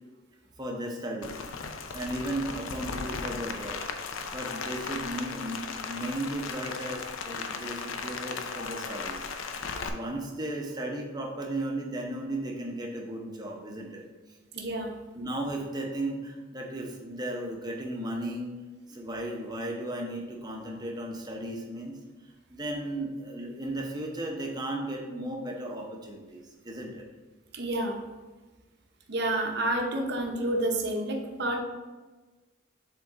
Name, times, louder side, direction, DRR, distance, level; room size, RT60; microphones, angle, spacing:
voice 1, 0.6-1.4 1.9-4.0 4.3-9.2 9.8-14.0 15.1-18.5 18.9-22.0 22.5-27.0, right 1 dB, 20° right, 1 dB, 0.7 m, -35 dB
Rain, 1.2-9.9, left 5 dB, 75° left, 0.5 m, -36 dB
voice 2, 14.5-14.9 27.5-28.0 29.1-31.6, right 1 dB, 55° right, 2 dB, 0.8 m, -29 dB
7.3 x 3.7 x 3.7 m, 1.2 s
head